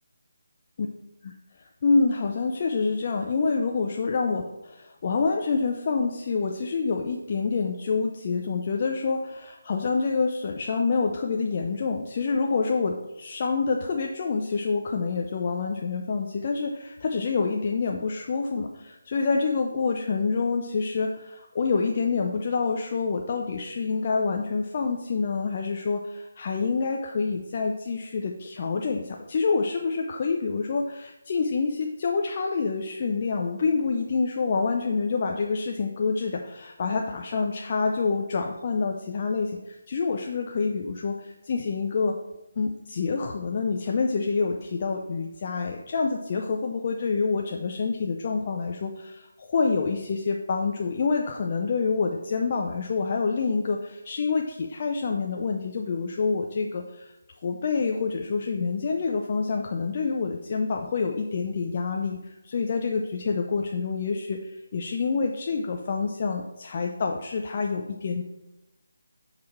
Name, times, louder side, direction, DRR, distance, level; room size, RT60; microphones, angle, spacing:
voice 1, 1.6-42.2 42.6-57.1 57.4-68.2, left 4 dB, 40° left, 2 dB, 0.5 m, -27 dB
7.7 x 4.8 x 3.5 m, 0.96 s
figure-of-eight pair, 165°, 0 cm